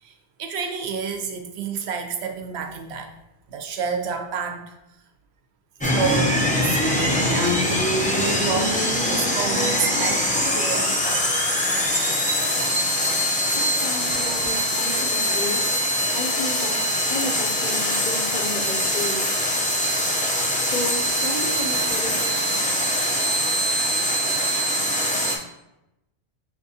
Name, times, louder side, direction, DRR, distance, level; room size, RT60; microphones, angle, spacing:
voice 1, 0.0-3.2 3.5-4.7 5.8-7.9 8.3-11.2, right 6 dB, 75° right, 0.8 m, -30 dB
sound 1, 5.8-25.4, equal, 15° left, 0.3 m, -23 dB
voice 2, 13.1-24.4, left 2 dB, 55° left, 0.6 m, -34 dB
5.8 x 2.4 x 2.7 m
omnidirectional pair, 1.1 m